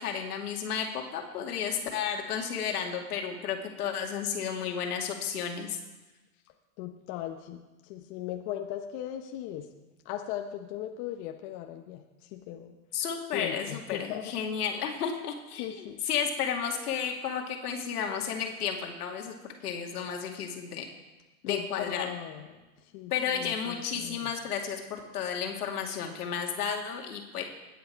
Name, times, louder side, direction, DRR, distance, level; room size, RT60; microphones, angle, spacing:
voice 1, 0.0-5.8 12.9-20.8 21.4-22.1 23.1-27.4, left 7 dB, 80° left, 2 dB, 2.4 m, -32 dB
voice 2, 6.8-7.6 7.9-9.7 10.0-12.0 12.3-12.8 13.3-14.3 15.6-16.0 21.5-22.4 22.9-24.3, left 11 dB, 45° left, 4 dB, 1.1 m, -38 dB
20.0 x 8.5 x 4.7 m, 1.1 s
hypercardioid pair, 120°, 45 cm